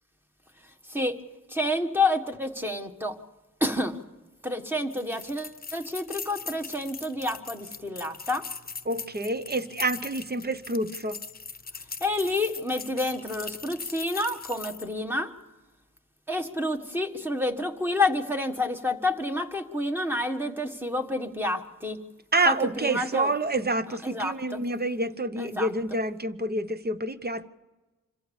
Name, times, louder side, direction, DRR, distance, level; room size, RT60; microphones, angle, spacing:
voice 1, 1.5-3.1 3.6-4.0 4.4-8.4 12.0-15.3 16.3-22.0 22.5-23.3 24.0-24.6 25.4-25.7, left 2 dB, 5° right, 1.7 m, -29 dB
sound 1, 4.9-15.0, left 5 dB, 30° left, 0.9 m, -40 dB
voice 2, 8.8-11.2 22.3-27.5, right 2 dB, 30° right, 0.9 m, -28 dB
26.0 x 15.0 x 7.2 m
cardioid pair, 85°, 33 cm